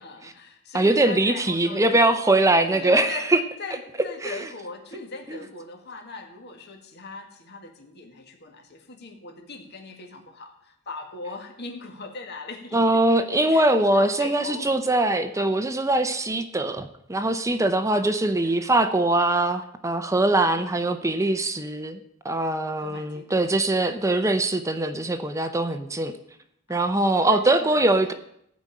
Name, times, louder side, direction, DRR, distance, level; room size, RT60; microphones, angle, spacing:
voice 1, 0.0-2.3 2.7-3.3 3.6-13.0 13.5-14.7 15.3-15.6 17.9-18.7 22.8-23.5 26.7-28.1, left 3 dB, 55° left, 3 dB, 1.8 m, -40 dB
voice 2, 0.7-3.4 4.2-4.4 5.3-5.4 12.7-26.1 26.7-28.1, right 2 dB, 15° right, 9 dB, 0.7 m, -22 dB
15.5 x 5.2 x 8.6 m, 0.73 s
head